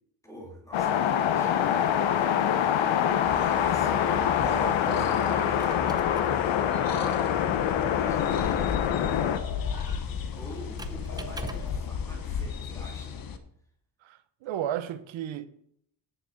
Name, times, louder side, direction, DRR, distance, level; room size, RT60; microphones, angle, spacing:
voice 1, 0.2-2.1 3.6-5.7 6.2-7.3 7.7-8.9 10.4-13.2, equal, 5° left, 2.1 m, -45 dB
sound 1, 0.7-9.4, left 9 dB, 80° left, 1.0 m, -25 dB
sound 2, 3.2-13.4, left 7 dB, 50° left, 1.0 m, -35 dB
voice 2, 4.4-5.2 14.0-15.5, right 11 dB, 80° right, 0.9 m, -34 dB
Squeak, 5.3-11.9, right 3 dB, 10° right, 0.5 m, -44 dB
9.7 x 7.0 x 5.8 m
cardioid pair, 160°, 46 cm